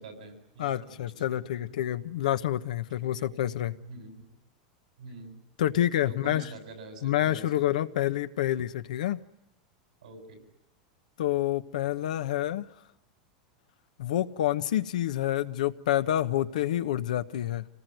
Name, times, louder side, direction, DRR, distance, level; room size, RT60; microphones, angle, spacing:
voice 1, 0.0-1.7 3.0-3.3 3.8-4.2 5.0-5.4 6.1-7.7 10.0-10.4, right 2 dB, 90° right, 5 dB, 7.3 m, -45 dB
voice 2, 0.6-3.8 5.6-6.5 7.0-9.2 11.2-12.7 14.0-17.7, left 12 dB, 80° left, 10 dB, 1.1 m, -28 dB
26.0 x 19.0 x 9.3 m, 0.88 s
hypercardioid pair, 115°, 4 cm